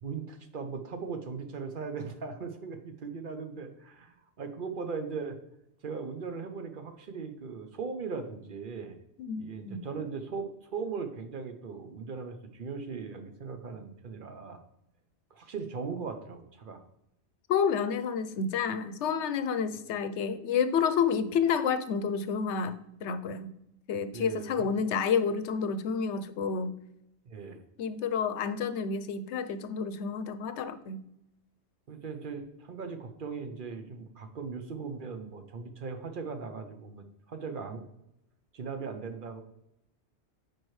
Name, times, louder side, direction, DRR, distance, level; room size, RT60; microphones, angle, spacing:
voice 1, 0.0-5.4 5.8-9.0 9.4-14.6 15.3-16.8 24.1-24.7 27.3-27.6 31.9-37.8 38.5-39.4, right 5 dB, 55° right, 7 dB, 0.8 m, -39 dB
voice 2, 9.2-9.8 17.5-23.5 23.9-26.7 27.8-31.0, left 6 dB, 90° left, 12 dB, 0.9 m, -29 dB
9.3 x 4.4 x 3.1 m, 0.81 s
omnidirectional pair, 1.1 m